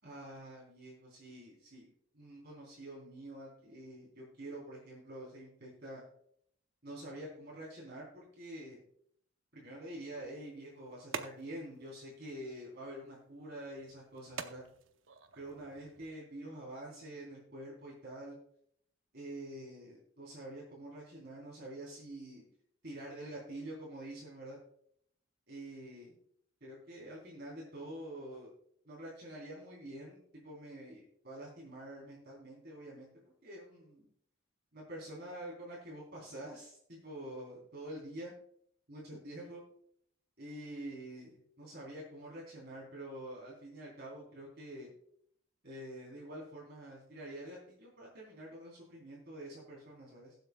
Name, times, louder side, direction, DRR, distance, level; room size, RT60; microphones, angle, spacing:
voice 1, 0.0-6.0 6.8-8.8 9.5-14.6 15.3-18.4 19.1-22.5 22.8-24.6 25.5-26.1 26.6-28.5 28.8-34.0 34.7-38.3 38.9-39.6 40.4-44.9 45.6-50.3, right 1 dB, 50° right, -5 dB, 3.5 m, -47 dB
sound 1, 10.1-16.1, right 5 dB, 65° right, 0.7 m, -49 dB
21.0 x 7.9 x 2.3 m, 0.68 s
head